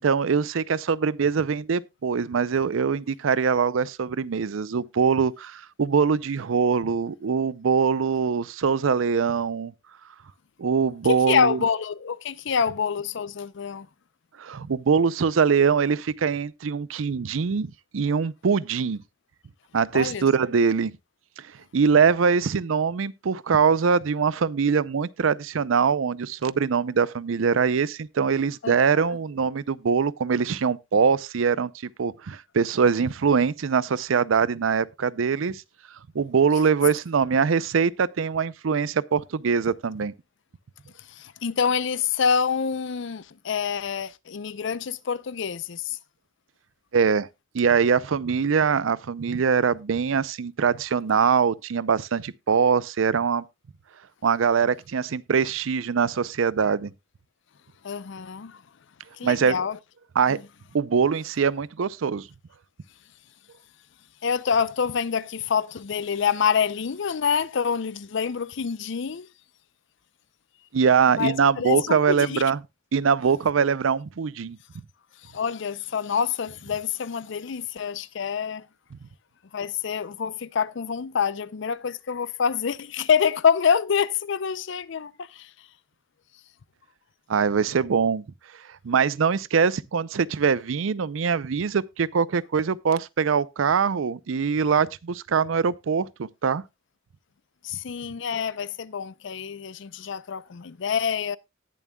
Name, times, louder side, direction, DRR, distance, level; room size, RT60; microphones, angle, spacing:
voice 1, 0.0-9.7 10.6-11.6 14.4-17.7 17.9-19.0 19.7-20.9 21.4-21.5 21.7-31.7 32.0-35.6 36.1-40.1 46.9-47.3 47.5-53.4 54.2-56.9 59.2-59.6 60.2-60.4 60.7-62.3 70.7-72.6 72.9-74.6 87.3-88.2 88.8-96.6, right 6 dB, 80° right, 0.5 m, -23 dB
voice 2, 11.0-13.9 19.9-20.3 28.6-29.2 41.1-46.0 57.8-58.6 59.2-59.8 60.2-60.4 64.2-69.3 71.2-72.4 75.2-78.7 79.5-85.5 97.6-101.4, left 6 dB, 65° left, 0.5 m, -26 dB
18.5 x 7.3 x 2.2 m
head